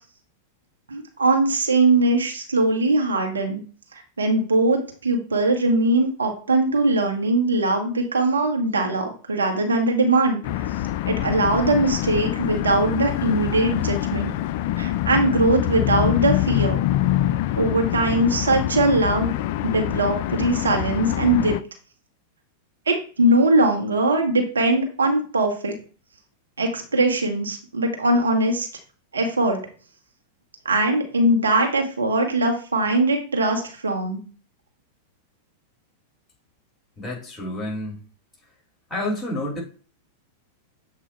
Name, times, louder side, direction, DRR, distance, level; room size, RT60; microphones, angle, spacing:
voice 1, 0.9-3.6 3.9-10.6 11.1-14.3 14.8-16.8 17.5-19.3 19.6-21.6 22.9-25.7 26.6-28.7 29.1-29.6 30.6-34.2, right 2 dB, 85° right, 3 dB, 1.3 m, -21 dB
sound 1, 10.4-21.6, left 13 dB, 55° left, 0.3 m, -25 dB
voice 2, 37.0-38.0 38.9-39.6, left 1 dB, 20° left, -2 dB, 3.4 m, -29 dB
7.7 x 2.7 x 4.5 m, 0.39 s
hypercardioid pair, 95°, 0 cm